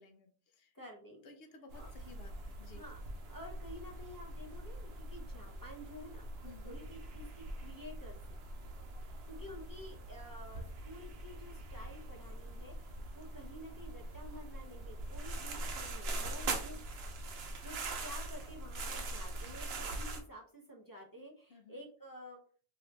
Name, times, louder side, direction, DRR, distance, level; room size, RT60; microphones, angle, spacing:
voice 1, 0.0-0.7 1.2-2.8 6.4-6.8 21.5-21.8, left 3 dB, 65° left, 6 dB, 0.8 m, -56 dB
voice 2, 0.7-1.3 1.8-1.9 2.7-3.0 3.3-8.4 9.3-16.8 17.4-22.4, equal, 25° left, -1 dB, 0.5 m, -51 dB
sound 1, 1.7-20.2, right 2 dB, 70° right, 0.9 m, -43 dB
2.8 x 2.5 x 3.1 m, 0.43 s
omnidirectional pair, 1.1 m